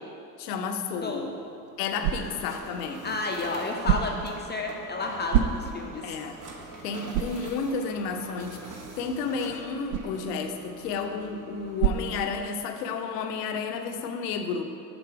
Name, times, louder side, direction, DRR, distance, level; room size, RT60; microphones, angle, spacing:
voice 1, 0.4-1.2 1.8-3.2 6.0-6.4 6.8-14.6, left 5 dB, 70° left, 6 dB, 0.7 m, -32 dB
sound 1, 1.1-12.9, right 9 dB, 70° right, 0.6 m, -33 dB
sound 2, 1.9-12.2, right 3 dB, 40° right, 1.1 m, -44 dB
voice 2, 3.0-6.1, left 3 dB, 20° left, 1 dB, 0.6 m, -32 dB
6.9 x 4.0 x 5.7 m, 2.6 s
figure-of-eight pair, 65°, 50 cm